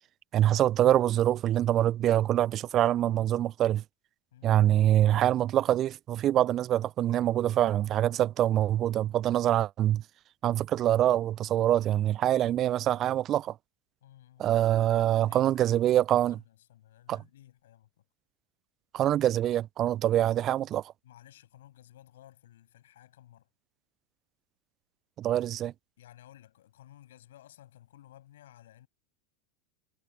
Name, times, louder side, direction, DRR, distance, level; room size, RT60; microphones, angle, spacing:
voice 1, 0.3-3.8 4.4-10.0 10.4-13.5 14.4-16.4 17.1-17.2 18.9-20.8 25.2-25.7, right 12 dB, 40° right, 0.6 m, -25 dB
voice 2, 4.3-4.9 12.3-12.7 14.0-14.5 15.2-16.0 16.3-18.0 21.0-23.5 26.0-28.9, left 13 dB, 70° left, 7.9 m, -56 dB
figure-of-eight pair, 85°, 0 cm